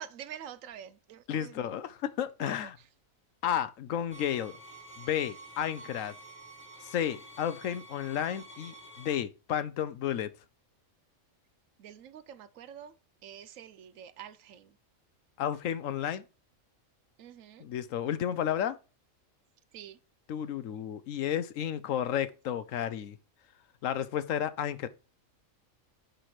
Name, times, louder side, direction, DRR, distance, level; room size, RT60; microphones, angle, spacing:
voice 1, 0.0-1.5 2.4-2.5 11.8-12.9 13.2-14.7 17.2-17.7 19.7-20.0, right 9 dB, 75° right, 1.0 m, -46 dB
voice 2, 1.3-2.8 3.4-4.6 5.0-6.1 6.8-10.3 15.4-16.2 17.6-18.8 20.3-23.2 23.8-24.9, left 10 dB, 70° left, 1.0 m, -32 dB
sound 1, 4.1-9.2, right 2 dB, 10° left, 1.5 m, -49 dB
5.8 x 5.1 x 4.7 m
omnidirectional pair, 1.5 m